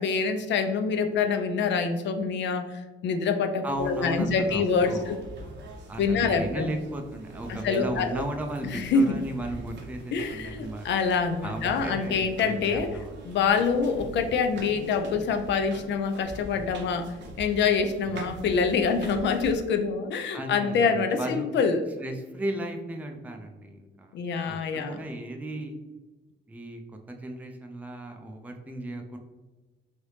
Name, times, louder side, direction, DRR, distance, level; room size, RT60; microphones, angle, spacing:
voice 1, 0.0-5.2 6.0-6.7 7.5-8.2 8.6-9.2 10.1-12.9 13.2-21.8 24.1-25.0, left 5 dB, 65° left, 7 dB, 0.4 m, -26 dB
voice 2, 3.6-5.2 5.9-10.9 11.4-13.1 18.0-18.2 20.3-21.5 22.0-24.2 24.4-25.8 26.5-26.8 27.1-29.2, right 1 dB, 10° right, 4 dB, 0.4 m, -35 dB
sound 1, 3.7-19.6, right 1 dB, 65° right, 0.7 m, -43 dB
3.2 x 2.7 x 3.2 m, 1.2 s
cardioid pair, 90°, 20 cm